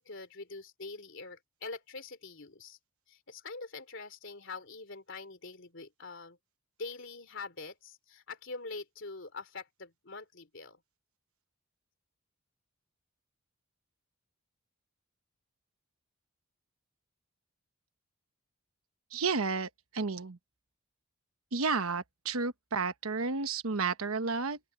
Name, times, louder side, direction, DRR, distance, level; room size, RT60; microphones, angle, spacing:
voice 1, 0.0-2.8 3.1-6.4 6.8-10.8, left 3 dB, 55° left, 3.3 m, -44 dB
voice 2, 19.1-20.4 21.5-24.6, right 4 dB, 75° right, 1.1 m, -32 dB
open air
head